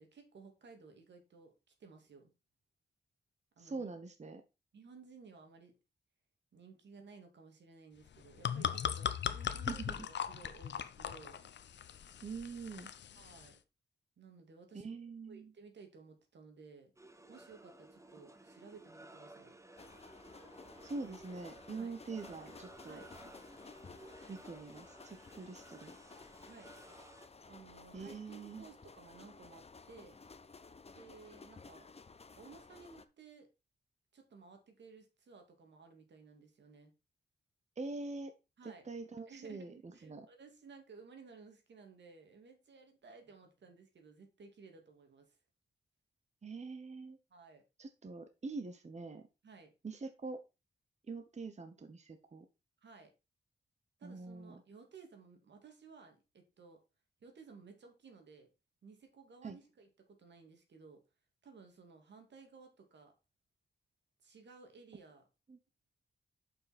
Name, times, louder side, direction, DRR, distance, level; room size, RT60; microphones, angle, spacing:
voice 1, 0.0-1.5 1.8-2.3 3.6-3.9 4.7-5.8 6.5-11.4 13.1-13.6 14.2-14.9 15.3-16.9 17.3-19.6 21.7-21.9 22.9-23.1 26.4-26.7 27.5-30.2 30.9-31.9 32.3-33.5 34.1-36.9 38.6-38.9 39.3-45.4 47.3-47.6 49.4-49.7 52.8-53.1 54.0-56.8 57.2-58.5 58.8-61.0 61.4-63.1 64.2-65.2, right 4 dB, 80° right, 2.2 m, -57 dB
voice 2, 3.6-4.4 9.7-10.1 12.2-12.9 14.7-15.5 20.8-23.0 24.3-26.0 27.9-28.7 37.8-38.3 38.6-40.3 46.4-47.2 47.8-49.3 49.8-50.4 51.1-52.5 54.0-54.6 59.4-59.6 65.5-65.6, right 3 dB, 40° right, 1.0 m, -44 dB
sound 1, 8.1-13.5, left 9 dB, 80° left, 0.7 m, -39 dB
sound 2, 17.0-27.3, right 2 dB, 15° right, 1.1 m, -57 dB
sound 3, 19.8-33.1, left 4 dB, 35° left, 0.8 m, -55 dB
6.8 x 5.6 x 4.3 m
cardioid pair, 60°, 18 cm